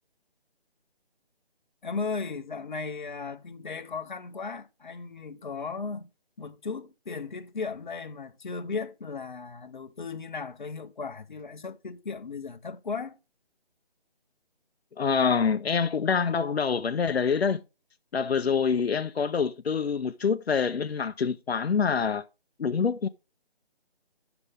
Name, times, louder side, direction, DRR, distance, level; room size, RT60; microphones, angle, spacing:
voice 1, 1.8-6.1 6.4-13.2, left 4 dB, 50° left, 0.9 m, -36 dB
voice 2, 15.0-17.6 18.1-22.2 22.6-23.1, left 6 dB, 80° left, 0.6 m, -26 dB
9.7 x 6.9 x 3.3 m
figure-of-eight pair, 165°, 31 cm